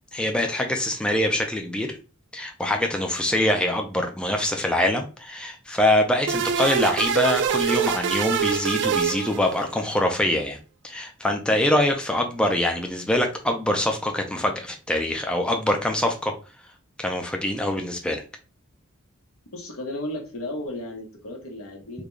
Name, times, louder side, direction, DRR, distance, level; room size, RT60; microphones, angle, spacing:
voice 1, 0.1-2.0 2.3-10.6 10.8-16.3 17.0-18.2, left 1 dB, 5° left, 3 dB, 0.4 m, -24 dB
sound 1, 6.3-9.9, right 7 dB, 55° right, 0.4 m, -25 dB
voice 2, 19.5-22.0, left 1 dB, 80° left, 1 dB, 1.0 m, -34 dB
3.8 x 2.3 x 3.1 m, 0.34 s
head